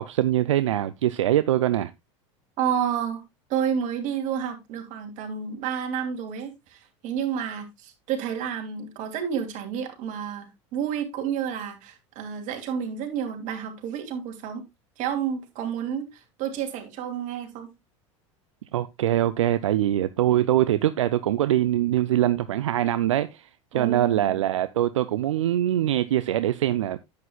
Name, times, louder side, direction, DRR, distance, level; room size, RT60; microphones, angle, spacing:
voice 1, 0.0-1.9 18.7-27.0, right 12 dB, 80° right, 0.5 m, -23 dB
voice 2, 2.6-3.2 3.5-14.6 15.0-17.7 23.7-24.3, right 8 dB, 55° right, 2.9 m, -30 dB
10.5 x 8.5 x 2.3 m
hypercardioid pair, 85°, 16 cm